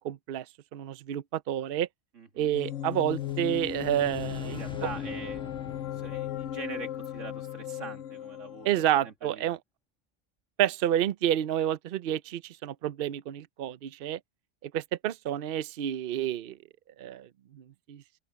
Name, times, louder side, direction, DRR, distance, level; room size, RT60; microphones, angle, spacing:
voice 1, 0.0-0.4 0.7-1.9 2.4-4.6 8.6-9.6 10.6-14.2 14.6-16.6 17.0-18.0, right 11 dB, 55° right, 0.8 m, -29 dB
voice 2, 2.1-2.5 4.4-5.4 5.9-8.7 9.0-9.5, right 4 dB, 90° right, 2.6 m, -43 dB
sound 1, 2.5-9.1, left 11 dB, 80° left, 1.1 m, -36 dB
sound 2, 2.9-8.0, left 1 dB, 5° left, 0.8 m, -48 dB
open air
omnidirectional pair, 1.3 m